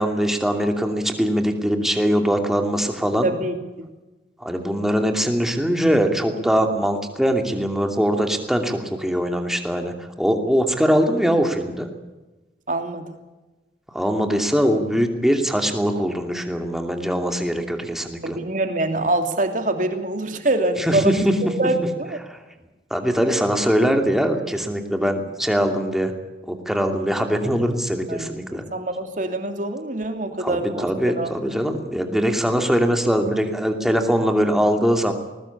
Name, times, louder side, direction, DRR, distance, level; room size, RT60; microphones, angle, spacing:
voice 1, 0.0-3.3 4.4-11.9 13.9-18.4 20.8-21.3 22.3-22.4 22.9-26.1 26.4-28.6 30.4-35.1, equal, ahead, 4 dB, 2.7 m, -22 dB
voice 2, 3.2-3.9 12.7-13.1 18.2-22.2 28.1-31.4, right 2 dB, 45° right, 6 dB, 2.9 m, -25 dB
20.5 x 20.0 x 8.5 m, 1.1 s
head